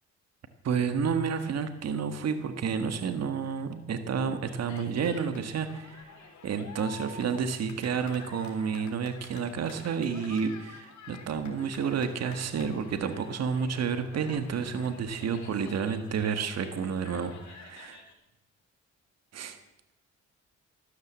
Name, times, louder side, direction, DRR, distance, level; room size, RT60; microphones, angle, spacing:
voice 1, 0.6-6.1 6.4-18.0 19.3-19.6, right 6 dB, 60° right, 9 dB, 1.7 m, -30 dB
Cheering, 4.5-18.1, left 6 dB, 70° left, 3.7 m, -49 dB
13.5 x 13.5 x 7.5 m, 0.92 s
cardioid pair, 90°, 30 cm